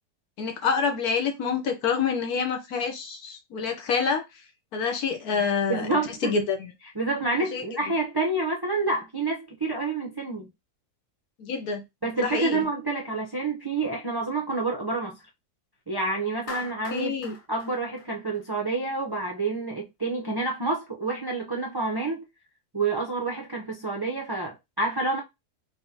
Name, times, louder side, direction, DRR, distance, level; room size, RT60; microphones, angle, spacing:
voice 1, 0.4-4.2 4.7-6.7 7.5-7.6 11.4-11.8 12.2-12.7 16.9-17.4, left 5 dB, 75° left, 1.4 m, -27 dB
voice 2, 5.7-6.4 6.9-10.5 12.0-15.2 15.9-22.3 22.7-25.2, right 3 dB, 35° right, 0.3 m, -28 dB
Clapping, 16.5-18.8, left 3 dB, 50° left, 0.6 m, -42 dB
3.7 x 3.5 x 2.8 m
omnidirectional pair, 1.6 m